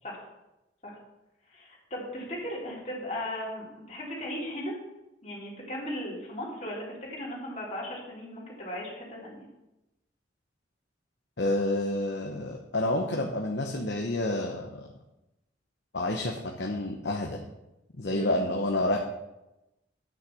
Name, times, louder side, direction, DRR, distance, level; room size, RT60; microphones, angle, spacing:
voice 1, 1.5-4.7 5.2-9.5 18.1-18.4, left 1 dB, 40° left, -5 dB, 3.7 m, -37 dB
voice 2, 11.4-14.8 15.9-17.4 18.0-19.0, left 1 dB, 70° left, 2 dB, 1.0 m, -29 dB
9.0 x 6.5 x 7.1 m, 0.95 s
head